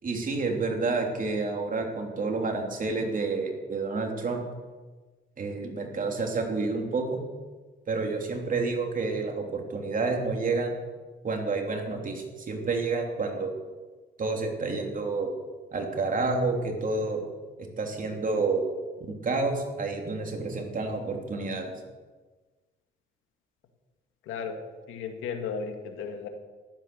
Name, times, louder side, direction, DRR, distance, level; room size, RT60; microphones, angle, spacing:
voice 1, 0.0-4.4 5.4-7.2 7.9-10.8 11.2-13.5 14.2-15.3 15.7-17.2 17.6-18.6 19.0-21.7, right 3 dB, 45° right, 2 dB, 3.3 m, -29 dB
voice 2, 24.3-24.6 24.9-26.3, left 6 dB, 90° left, 5 dB, 2.2 m, -34 dB
14.5 x 12.0 x 7.0 m, 1.3 s
cardioid pair, 90°, 20 cm